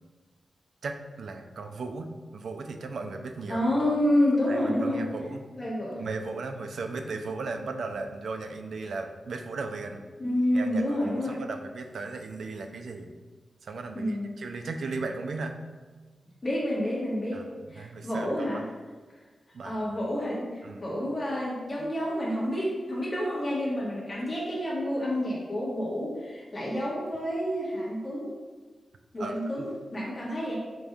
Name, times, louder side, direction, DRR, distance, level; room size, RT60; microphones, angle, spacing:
voice 1, 0.8-3.6 4.5-5.4 6.0-10.0 10.5-13.1 13.6-15.5 17.3-18.6 19.5-19.8 20.6-20.8 29.2-29.7, right 3 dB, 75° right, 5 dB, 0.3 m, -36 dB
voice 2, 3.5-5.0 5.5-6.0 10.2-11.4 13.9-14.3 16.4-17.4 17.7-18.6 19.6-28.3 29.1-30.6, left 1 dB, 25° left, -6 dB, 1.2 m, -29 dB
5.1 x 3.1 x 2.3 m, 1.4 s
wide cardioid pair, 145°, 0 cm